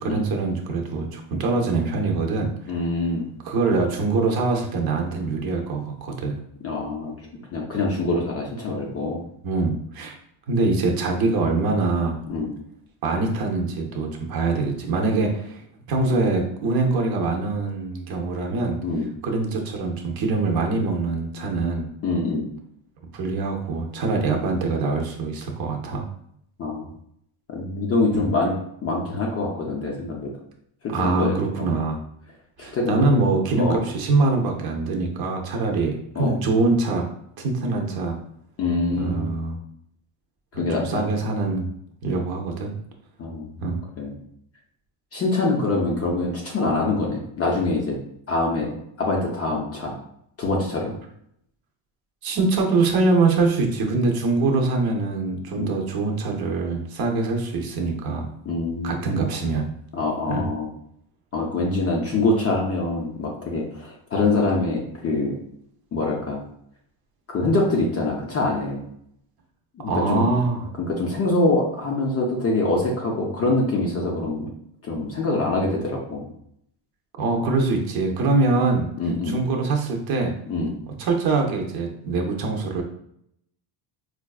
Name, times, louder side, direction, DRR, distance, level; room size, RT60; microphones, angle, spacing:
voice 1, 0.0-2.7 3.4-6.4 9.4-10.2 10.5-12.2 13.0-15.6 15.9-18.8 19.2-21.9 23.1-26.1 28.1-28.3 30.9-32.0 32.6-37.1 37.4-38.2 39.0-39.6 40.5-41.7 42.0-42.7 43.6-43.8 52.2-58.3 58.8-59.7 60.3-60.5 69.9-70.7 77.2-78.9 79.3-80.4 80.9-82.8, right 3 dB, 45° right, 2 dB, 0.6 m, -24 dB
voice 2, 2.7-3.3 6.6-7.1 7.5-9.2 12.3-12.5 18.8-19.1 22.0-22.4 26.6-26.9 27.5-28.5 28.8-30.3 31.0-31.8 32.6-33.2 33.6-33.8 36.2-36.4 38.6-39.3 40.5-41.1 43.2-43.5 44.0-44.2 45.1-48.0 48.3-48.7 49.0-50.0 50.4-50.9 55.5-55.7 58.5-59.0 59.9-60.7 61.3-65.3 65.9-66.4 67.3-68.8 69.8-70.3 70.8-74.5 74.8-76.3 79.0-79.4 80.5-80.7, left 2 dB, 30° left, -1 dB, 0.4 m, -24 dB
4.5 x 2.3 x 2.3 m, 0.71 s
cardioid pair, 155°, 50 cm